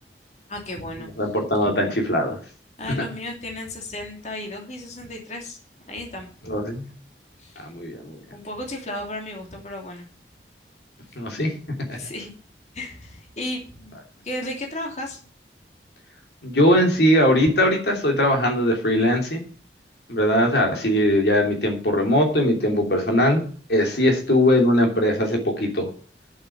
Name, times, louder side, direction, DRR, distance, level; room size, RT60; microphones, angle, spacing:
voice 1, 0.5-1.1 2.8-5.6 5.9-6.3 7.4-7.7 8.3-10.1 11.9-12.3 12.7-13.9 14.2-15.2, left 1 dB, 40° left, 2 dB, 2.8 m, -34 dB
voice 2, 1.2-2.4 2.9-3.0 6.5-6.8 7.6-8.2 11.2-12.0 16.4-19.4 20.1-23.4 23.7-25.9, left 1 dB, 70° left, 2 dB, 3.0 m, -20 dB
8.5 x 8.0 x 7.4 m, 0.43 s
head